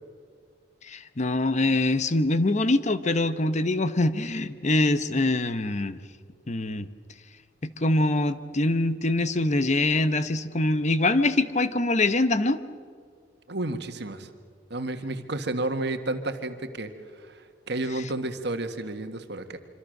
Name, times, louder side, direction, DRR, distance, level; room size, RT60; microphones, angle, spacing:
voice 1, 0.9-6.0 6.5-6.9 7.6-12.6, left 2 dB, 40° left, 12 dB, 0.9 m, -24 dB
voice 2, 13.5-14.3 14.7-16.9 17.2-19.6, right 2 dB, 65° right, 8 dB, 1.7 m, -31 dB
26.0 x 25.5 x 6.6 m, 2.1 s
head